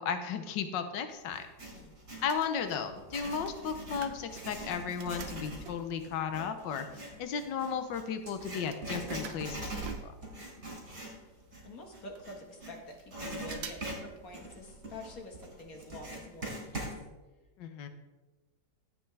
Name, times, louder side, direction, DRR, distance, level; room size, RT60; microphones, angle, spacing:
voice 1, 0.0-1.5 2.2-9.7 10.0-10.1 17.6-17.9, left 7 dB, 75° left, 8 dB, 1.6 m, -35 dB
sound 1, 0.9-1.9 2.2-6.1 6.7-6.8 6.9-10.6 10.8-10.9 11.1-11.2 11.8-11.9 12.2-13.0 13.4-14.0 14.3-14.4 15.4-15.7 16.0-16.1 16.6-16.7 17.0-17.1, right 7 dB, 85° right, 1.6 m, -50 dB
Writing, 1.3-2.3 2.9-12.7 13.1-17.0, right 1 dB, 35° right, 3.5 m, -42 dB
voice 2, 1.7-2.0 11.6-17.0, left 1 dB, 50° left, 2 dB, 2.0 m, -47 dB
15.5 x 8.3 x 3.4 m, 1.2 s
omnidirectional pair, 2.0 m